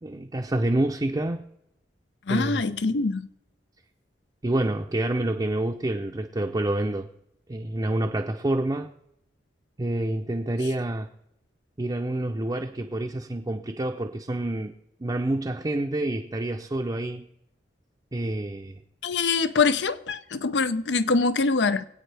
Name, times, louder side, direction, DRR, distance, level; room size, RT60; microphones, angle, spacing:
voice 1, 0.0-1.4 2.3-2.6 4.4-7.1 7.5-8.9 9.8-11.1 11.8-14.7 15.0-17.3 18.1-18.8, right 1 dB, 25° right, 0.5 m, -27 dB
voice 2, 2.3-3.3 19.0-21.8, left 4 dB, 80° left, 0.6 m, -24 dB
24.5 x 8.7 x 3.4 m
head